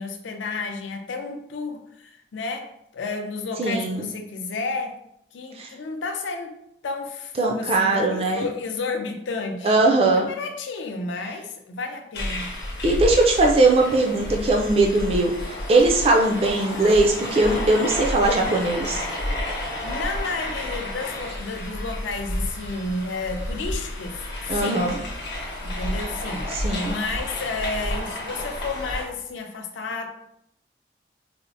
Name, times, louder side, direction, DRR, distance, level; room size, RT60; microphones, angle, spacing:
voice 1, 0.0-4.9 5.3-6.6 6.8-12.5 16.7-17.0 19.8-24.9 25.6-30.1, left 3 dB, 85° left, 4 dB, 0.5 m, -32 dB
voice 2, 3.6-4.0 5.6-5.7 7.4-8.5 9.6-10.3 12.8-15.3 15.7-19.0 24.5-25.0 26.5-26.9, right 2 dB, 30° right, 1 dB, 0.3 m, -20 dB
sound 1, 12.1-29.1, left 1 dB, 60° left, 0.8 m, -31 dB
4.2 x 2.0 x 2.5 m, 0.74 s
head